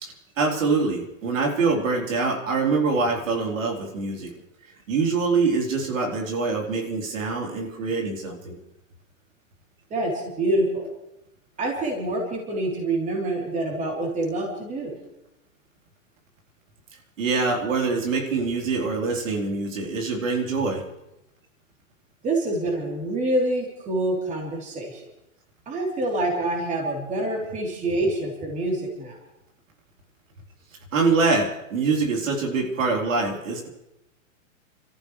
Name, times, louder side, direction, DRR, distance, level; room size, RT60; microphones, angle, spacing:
voice 1, 0.0-4.3 4.9-8.6 17.2-20.8 30.9-33.7, right 4 dB, 75° right, 0 dB, 4.1 m, -24 dB
voice 2, 9.9-10.9 11.6-15.0 22.2-25.0 25.7-29.2, right 1 dB, 20° right, -1 dB, 3.8 m, -26 dB
29.0 x 14.0 x 3.3 m, 0.88 s
hypercardioid pair, 140°, 39 cm